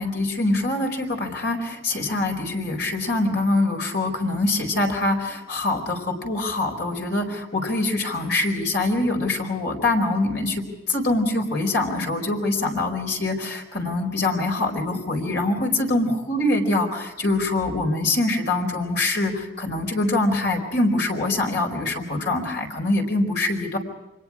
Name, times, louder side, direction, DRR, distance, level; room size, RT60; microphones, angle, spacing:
voice 1, 0.0-23.8, left 2 dB, 55° left, 2 dB, 4.6 m, -24 dB
29.5 x 25.0 x 4.9 m, 1.0 s
head